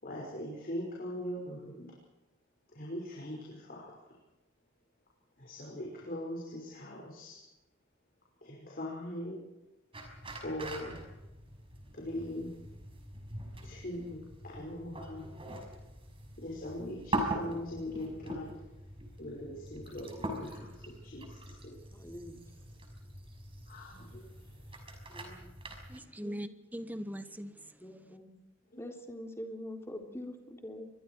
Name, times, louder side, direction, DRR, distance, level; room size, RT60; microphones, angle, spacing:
voice 1, 0.0-1.9 2.7-3.9 5.4-7.4 8.4-9.5 10.3-11.0 11.9-12.5 13.6-15.3 16.4-18.5 19.2-21.8 23.7-24.3 28.7-28.8, left 1 dB, 45° left, -3 dB, 5.6 m, -41 dB
sound 1, 9.9-26.0, right 1 dB, 30° right, 5.8 m, -42 dB
voice 2, 21.9-22.4 25.1-25.5 26.2-26.4 27.8-28.3 28.8-30.9, left 1 dB, 15° left, 2 dB, 3.7 m, -44 dB
voice 3, 25.9-28.2, equal, 10° right, 9 dB, 1.3 m, -42 dB
28.0 x 23.5 x 4.8 m, 1.0 s
head